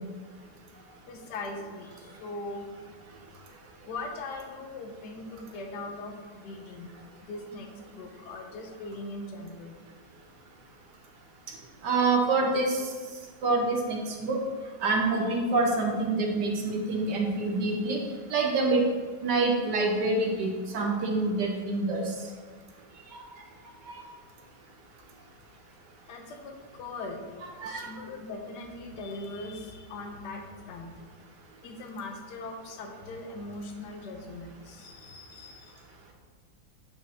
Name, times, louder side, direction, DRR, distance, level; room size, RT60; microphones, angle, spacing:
voice 1, 1.1-2.7 3.9-6.9 7.2-7.7 7.9-9.8 26.1-27.2 27.6-30.9 31.6-35.8, left 2 dB, 65° left, 3 dB, 1.4 m, -40 dB
voice 2, 11.8-12.8 13.4-14.4 14.8-18.0 18.3-18.8 19.2-22.0 27.6-27.9, right 3 dB, 65° right, 1 dB, 1.4 m, -26 dB
8.7 x 5.1 x 3.5 m, 1.5 s
omnidirectional pair, 2.2 m